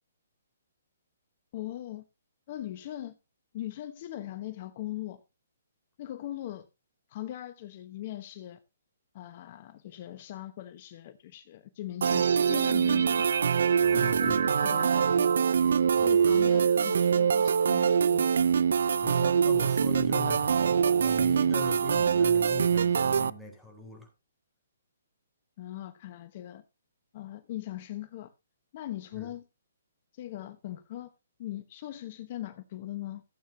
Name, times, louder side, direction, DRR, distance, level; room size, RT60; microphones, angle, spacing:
voice 1, 1.5-2.0 2.5-3.1 3.5-5.2 6.0-6.7 7.1-8.6 9.1-13.6 13.9-15.4 15.9-18.4 25.6-26.6 27.1-28.3 28.7-29.4 30.1-31.1 31.4-33.2, left 13 dB, 40° left, 1.0 m, -40 dB
sound 1, 12.0-23.3, right 7 dB, 70° right, 0.6 m, -24 dB
voice 2, 13.8-14.5 16.0-16.4 19.0-24.1 29.1-29.3, left 3 dB, ahead, 4.0 m, -41 dB
15.5 x 8.7 x 2.8 m
hypercardioid pair, 145°, 0 cm